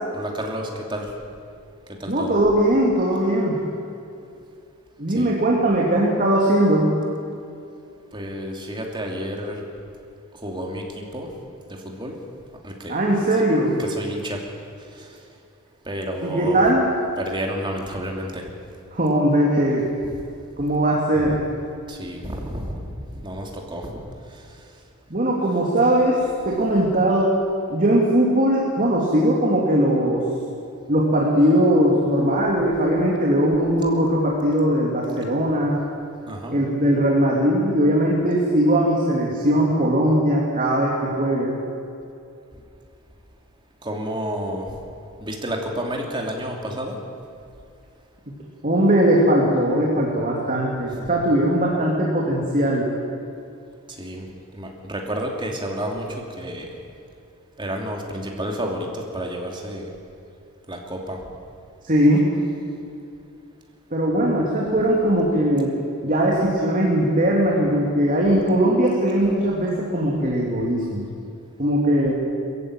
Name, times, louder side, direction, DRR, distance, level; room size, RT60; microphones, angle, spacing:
voice 1, 0.1-1.1 2.0-2.4 5.1-5.4 8.1-9.7 10.4-11.3 11.7-12.2 12.6-13.0 13.3-13.4 13.8-14.4 14.9-15.1 15.8-16.6 17.2-18.4 20.1-20.2 21.1-21.4 21.9-22.9 23.1-24.0 24.3-24.4 36.3-36.6 43.8-44.7 45.2-47.0 51.0-51.1 54.0-54.3 54.5-56.7 57.6-59.9 60.7-61.2, equal, 20° right, 1 dB, 2.9 m, -30 dB
voice 2, 2.1-3.6 5.0-6.9 12.9-13.8 16.2-16.8 18.9-19.9 20.6-21.4 25.1-26.2 26.4-27.3 27.7-30.2 30.9-35.9 36.5-41.5 48.6-52.9 61.8-62.3 63.9-65.7 66.0-71.1 71.6-72.1, right 1 dB, 40° right, -3 dB, 2.7 m, -20 dB
22.0 x 15.0 x 9.0 m, 2.6 s
head